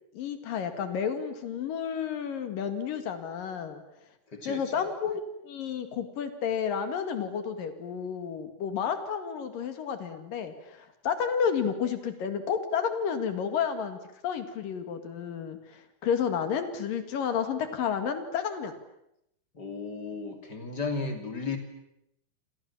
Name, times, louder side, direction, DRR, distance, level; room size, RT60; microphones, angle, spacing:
voice 1, 0.1-3.8 4.4-18.7, left 7 dB, 55° left, 9 dB, 3.0 m, -31 dB
voice 2, 4.3-4.8 19.5-21.6, left 4 dB, 25° left, 6 dB, 2.4 m, -34 dB
29.0 x 27.0 x 7.3 m, 0.81 s
omnidirectional pair, 5.9 m